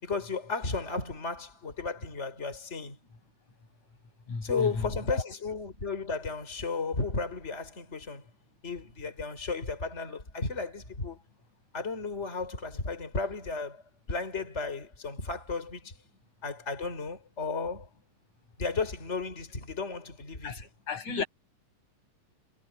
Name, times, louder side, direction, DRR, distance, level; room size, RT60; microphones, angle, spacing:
voice 1, 0.0-3.0 4.4-8.2 8.6-11.2 11.7-13.8 14.1-15.9 16.4-17.9 18.6-20.5 21.1-21.2, left 4 dB, 20° left, 4.7 m, -34 dB
voice 2, 4.3-5.2 20.4-21.3, left 4 dB, 75° left, 7.4 m, -35 dB
omnidirectional pair, 3.3 m